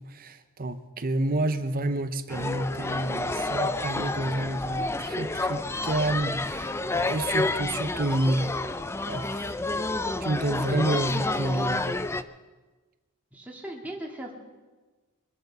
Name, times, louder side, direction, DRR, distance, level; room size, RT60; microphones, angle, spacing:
voice 1, 0.0-8.5 9.0-9.6 10.2-12.0, right 2 dB, 40° right, 10 dB, 0.7 m, -29 dB
sound 1, 2.3-12.2, left 2 dB, 10° left, 0.4 m, -29 dB
voice 2, 13.3-14.3, right 1 dB, 5° right, -1 dB, 1.9 m, -38 dB
23.5 x 7.9 x 6.9 m, 1.3 s
head